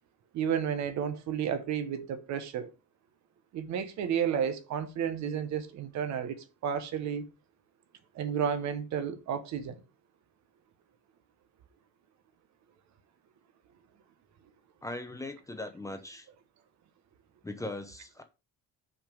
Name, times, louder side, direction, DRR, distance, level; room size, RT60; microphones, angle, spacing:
voice 1, 0.3-2.7 3.5-7.3 8.1-9.8, right 8 dB, 55° right, 1.1 m, -32 dB
voice 2, 14.8-16.3 17.4-18.2, left 2 dB, 10° left, 0.8 m, -39 dB
6.2 x 5.1 x 5.2 m
cardioid pair, 165°, 34 cm